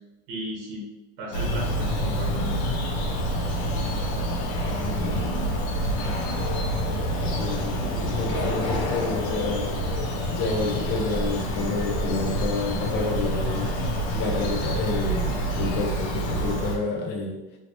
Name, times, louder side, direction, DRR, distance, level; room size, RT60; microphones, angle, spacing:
voice 1, 0.3-0.9 1.2-2.6 15.2-15.4, equal, 50° right, -2 dB, 1.1 m, -35 dB
Bird vocalization bird call bird song, 1.3-16.8, equal, 70° left, 0.9 m, -27 dB
voice 2, 4.8-5.3 7.2-9.7 10.3-13.7 14.1-17.4, left 3 dB, 30° left, 2 dB, 0.5 m, -29 dB
3.0 x 2.8 x 2.9 m, 1.1 s
supercardioid pair, 150°, 35 cm